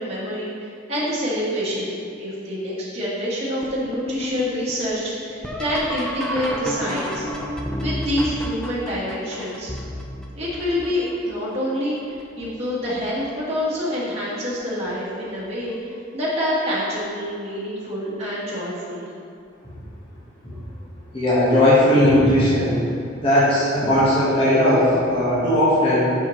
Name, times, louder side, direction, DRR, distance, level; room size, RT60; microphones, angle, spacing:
voice 1, 0.0-7.2 7.8-9.7 10.3-19.0, equal, 35° right, -9 dB, 1.6 m, -27 dB
sound 1, 3.6-11.3 12.0-12.5 12.9-13.6 14.9-15.0 15.7-16.0 18.2-18.3 20.6-20.7, equal, 5° left, 0.5 m, -32 dB
voice 2, 21.1-22.8 23.2-26.1, left 1 dB, 30° left, -10 dB, 1.4 m, -17 dB
7.0 x 5.9 x 3.2 m, 2.4 s
head